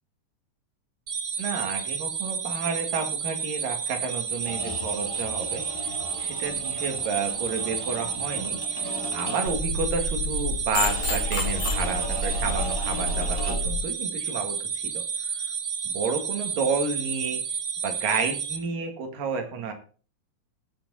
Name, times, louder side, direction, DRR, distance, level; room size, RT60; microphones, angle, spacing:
sound 1, 1.1-18.6, right 6 dB, 50° right, 1.1 m, -31 dB
voice 1, 1.4-5.6 6.2-15.0 15.8-17.4 17.8-19.7, right 5 dB, 85° right, 5 dB, 3.7 m, -31 dB
sound 2, 4.3-9.7 10.8-13.8, equal, 10° right, 1.9 m, -37 dB
sound 3, 9.5-13.7, left 2 dB, 65° left, 4.1 m, -29 dB
18.0 x 7.5 x 4.1 m, 0.40 s
omnidirectional pair, 3.8 m